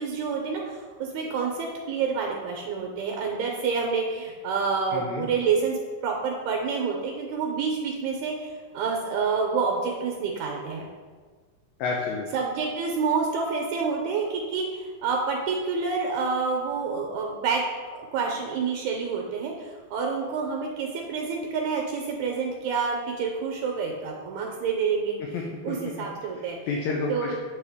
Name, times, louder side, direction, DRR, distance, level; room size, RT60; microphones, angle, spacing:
voice 1, 0.0-10.9 12.3-17.6 17.9-25.2 25.6-26.6 27.1-27.3, right 5 dB, 80° right, 1 dB, 1.9 m, -28 dB
voice 2, 4.9-5.3 11.8-12.3 25.3-25.8 26.3-27.4, left 4 dB, 80° left, 0 dB, 1.7 m, -30 dB
8.3 x 3.3 x 3.4 m, 1.5 s
omnidirectional pair, 3.5 m